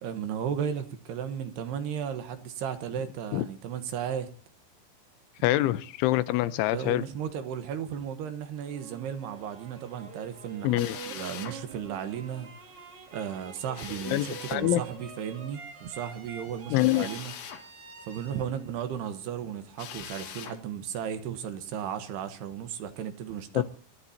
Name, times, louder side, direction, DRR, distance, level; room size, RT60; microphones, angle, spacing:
voice 1, 0.0-4.3 6.7-12.5 13.1-17.3 18.1-23.6, right 8 dB, 70° right, 3.0 m, -35 dB
voice 2, 5.4-7.0 10.6-11.0 14.1-14.8 16.7-17.1 23.5-23.6, left 15 dB, 90° left, 3.3 m, -25 dB
sound 1, 8.6-19.6, right 5 dB, 45° right, 3.2 m, -47 dB
Drill, 10.8-11.6 13.8-14.7 16.8-17.7 19.8-20.6, left 9 dB, 75° left, 3.9 m, -41 dB
29.0 x 14.0 x 2.8 m
omnidirectional pair, 5.3 m